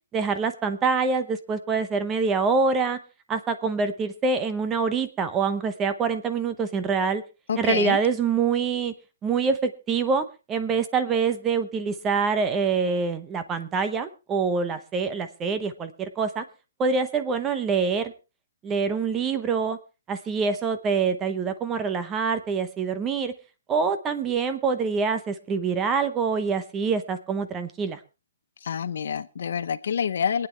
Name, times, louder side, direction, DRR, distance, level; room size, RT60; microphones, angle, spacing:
voice 1, 0.1-3.0 3.3-7.2 7.6-8.9 9.2-16.4 16.8-18.1 18.6-19.8 20.1-23.3 23.7-28.0, right 5 dB, 15° right, 11 dB, 0.8 m, -25 dB
voice 2, 7.5-8.0 28.6-30.5, left 7 dB, 65° left, 14 dB, 0.9 m, -27 dB
24.5 x 9.2 x 3.4 m, 0.30 s
hypercardioid pair, 175°, 0 cm